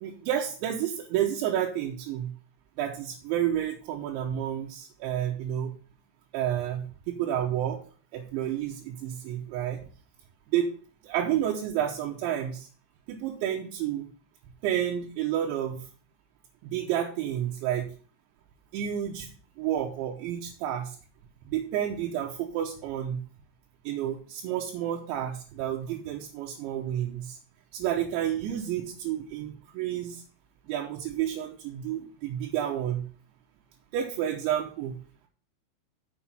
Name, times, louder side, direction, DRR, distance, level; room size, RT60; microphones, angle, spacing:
voice 1, 0.0-2.3 2.8-5.7 6.3-7.8 8.1-9.8 10.5-10.7 11.0-12.7 13.1-14.1 14.6-15.8 16.6-17.9 18.7-19.3 19.6-21.0 21.5-23.2 23.9-27.4 27.7-30.2 30.7-33.0 33.9-35.0, right 10 dB, 80° right, 0 dB, 3.2 m, -30 dB
7.3 x 5.8 x 5.7 m, 0.41 s
omnidirectional pair, 5.5 m